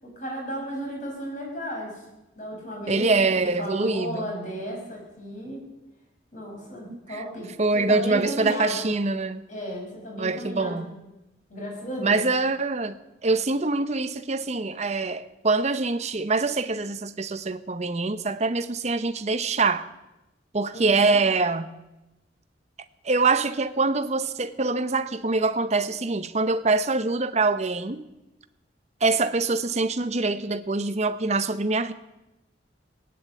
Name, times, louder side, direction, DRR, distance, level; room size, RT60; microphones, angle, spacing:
voice 1, 0.0-2.0 2.4-5.6 6.3-8.9 9.5-10.8 11.5-12.2 20.7-21.2, equal, 45° left, -1 dB, 5.8 m, -34 dB
voice 2, 2.9-4.3 6.9-7.2 7.6-9.4 10.2-10.9 12.0-13.0 13.2-19.9 20.5-21.7 23.0-28.0 29.0-31.9, right 3 dB, 40° right, 11 dB, 0.8 m, -24 dB
17.5 x 9.6 x 8.1 m, 0.99 s
head